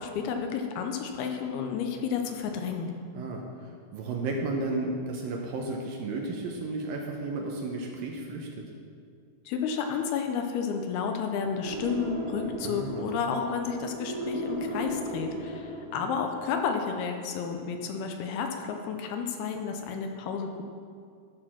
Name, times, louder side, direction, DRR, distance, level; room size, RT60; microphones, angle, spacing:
voice 1, 0.0-2.9 9.5-20.6, left 6 dB, 80° left, 4 dB, 2.6 m, -31 dB
voice 2, 3.9-8.5 12.6-13.0, right 2 dB, 75° right, 0 dB, 2.3 m, -33 dB
sound 1, 11.6-16.3, right 1 dB, 30° right, 2.2 m, -36 dB
11.5 x 6.6 x 6.0 m, 2.3 s
omnidirectional pair, 4.7 m